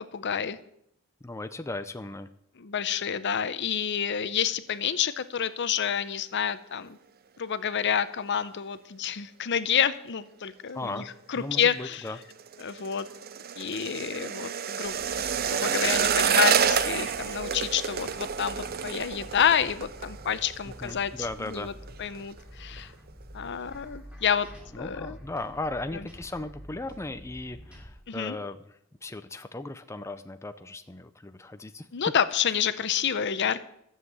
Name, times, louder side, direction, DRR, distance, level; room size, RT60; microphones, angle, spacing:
voice 1, 0.1-0.6 2.6-7.0 7.4-11.0 11.3-12.0 12.6-13.1 13.6-21.1 21.4-21.7 22.0-22.9 23.3-24.5 24.8-25.2 28.1-28.4 31.9-33.6, left 8 dB, 55° left, 14 dB, 0.7 m, -28 dB
voice 2, 1.2-2.3 10.7-11.1 11.4-12.2 20.6-21.7 24.7-31.9, left 2 dB, 15° left, 9 dB, 0.5 m, -37 dB
sound 1, 11.9-21.0 21.2-21.6 21.9-22.4 22.8-22.9, right 7 dB, 45° right, 0.6 m, -28 dB
sound 2, 14.8-27.9, equal, 5° right, 2.7 m, -47 dB
13.0 x 7.4 x 8.0 m, 0.75 s
head